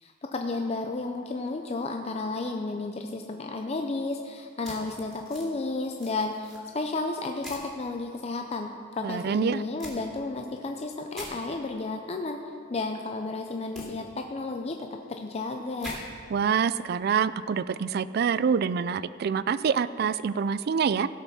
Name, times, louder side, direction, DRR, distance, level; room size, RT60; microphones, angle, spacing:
voice 1, 0.0-12.4 12.7-16.0, left 3 dB, 35° left, 4 dB, 0.5 m, -32 dB
sound 1, 4.6-5.5 5.9-6.6 7.4-7.7 9.8-10.0 11.1-11.3 13.7-13.9 15.8-16.0, left 1 dB, ahead, 2.4 m, -42 dB
voice 2, 9.0-9.6 16.3-21.1, right 6 dB, 55° right, 16 dB, 0.3 m, -26 dB
16.5 x 5.6 x 6.1 m, 2.3 s
head